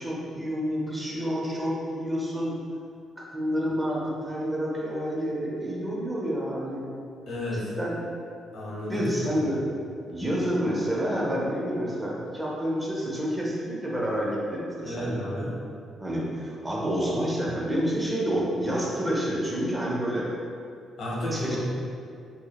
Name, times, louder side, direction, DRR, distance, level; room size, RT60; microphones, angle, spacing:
voice 1, 0.0-2.5 3.2-6.9 7.5-8.0 8.9-9.6 10.1-15.2 16.0-20.3 21.3-21.6, equal, 15° right, -5 dB, 0.5 m, -29 dB
voice 2, 7.3-7.7 8.5-9.1 14.8-15.5 21.0-21.6, left 1 dB, 80° left, -6 dB, 0.7 m, -31 dB
2.2 x 2.0 x 2.8 m, 2.4 s
cardioid pair, 90°, 0 cm